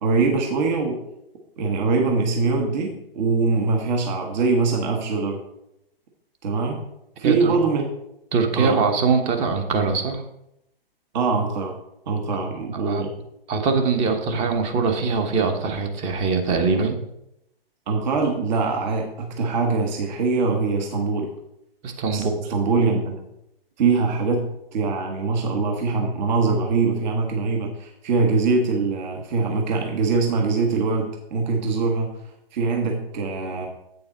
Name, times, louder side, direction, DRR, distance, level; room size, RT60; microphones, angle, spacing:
voice 1, 0.0-1.0 1.6-5.4 6.4-6.8 7.2-7.8 8.6-8.8 11.1-11.7 12.1-13.1 17.9-21.3 22.1-23.2 23.8-32.1 32.5-33.7, right 4 dB, 50° right, 2 dB, 1.6 m, -23 dB
voice 2, 7.2-7.5 8.3-10.2 12.7-13.0 13.5-17.0 21.8-22.5, right 4 dB, 20° right, 6 dB, 1.0 m, -22 dB
8.3 x 6.9 x 3.9 m, 0.82 s
hypercardioid pair, 135°, 30 cm